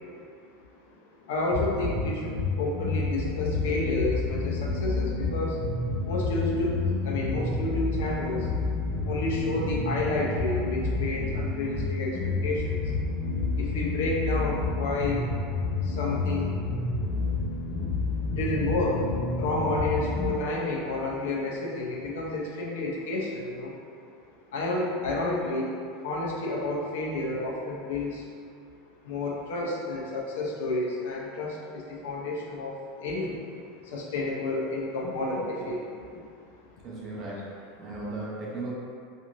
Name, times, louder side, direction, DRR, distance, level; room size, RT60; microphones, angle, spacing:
voice 1, 0.9-5.6 6.0-8.5 9.0-12.9 13.5-15.3 15.8-16.6 18.3-19.1 19.4-23.7 24.5-25.7 26.0-28.2 29.0-35.9 36.4-36.5 36.8-36.9, left 2 dB, 80° left, -3 dB, 0.5 m, -30 dB
sound 1, 1.5-20.3, left 3 dB, 30° left, 0.8 m, -29 dB
voice 2, 36.8-37.5 37.8-38.7, right 2 dB, 25° right, -6 dB, 0.5 m, -36 dB
2.5 x 2.5 x 2.9 m, 2.3 s
supercardioid pair, 175°, 0 cm